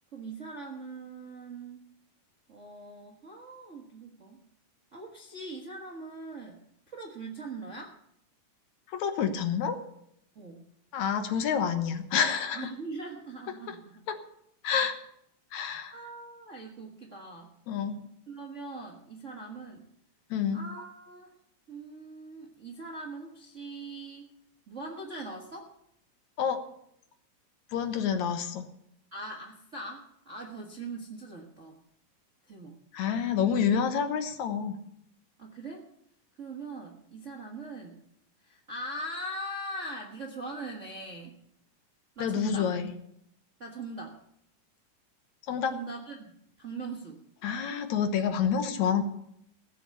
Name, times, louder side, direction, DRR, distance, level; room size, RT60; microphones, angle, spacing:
voice 1, 0.1-1.9 2.5-4.4 4.9-6.6 6.9-8.0 10.3-10.7 12.5-14.0 15.9-17.5 18.3-19.9 20.5-21.3 21.7-24.3 24.7-25.7 29.1-31.8 32.5-32.7 35.4-35.9 36.4-38.0 38.4-41.4 42.1-42.7 43.6-44.2 45.7-47.2, right 2 dB, 55° right, 0 dB, 0.8 m, -41 dB
voice 2, 8.9-9.8 10.9-12.7 13.7-13.8 14.1-14.2 14.6-14.9 15.5-15.9 17.7-18.0 20.3-20.6 26.4-26.6 27.7-28.7 32.9-34.8 42.2-42.9 45.5-45.7 47.4-49.0, left 7 dB, 65° left, 8 dB, 2.2 m, -28 dB
16.0 x 7.1 x 8.2 m, 0.73 s
omnidirectional pair, 3.9 m